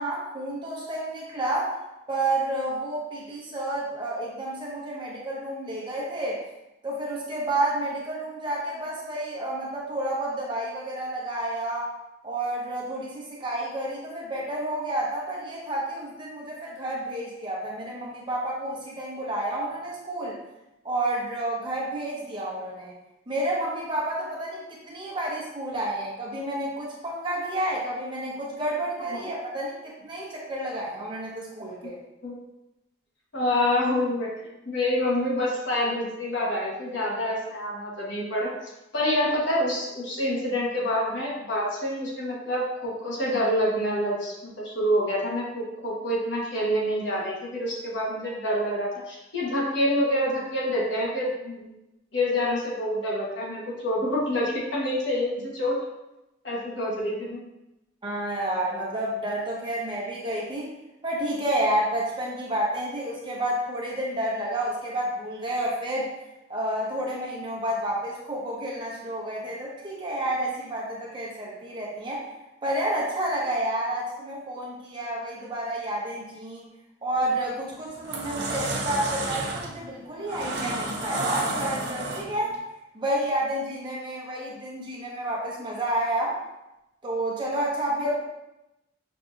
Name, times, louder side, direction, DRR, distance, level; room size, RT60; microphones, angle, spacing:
voice 1, 0.0-1.7 2.1-6.4 6.8-11.9 12.2-20.4 20.8-22.9 23.3-32.0 58.0-60.7 61.0-66.1 66.5-72.3 72.6-76.7 77.0-82.5 82.9-86.4 87.0-88.1, right 1 dB, 25° right, -4 dB, 0.9 m, -30 dB
voice 2, 33.3-34.3 34.6-38.5 38.9-51.7 52.1-55.7 56.4-57.4 88.0-88.1, left 1 dB, 65° left, -4 dB, 1.2 m, -27 dB
sound 1, 77.2-77.4 77.9-82.5, right 2 dB, 60° right, 0.7 m, -31 dB
5.8 x 2.7 x 2.5 m, 0.93 s
head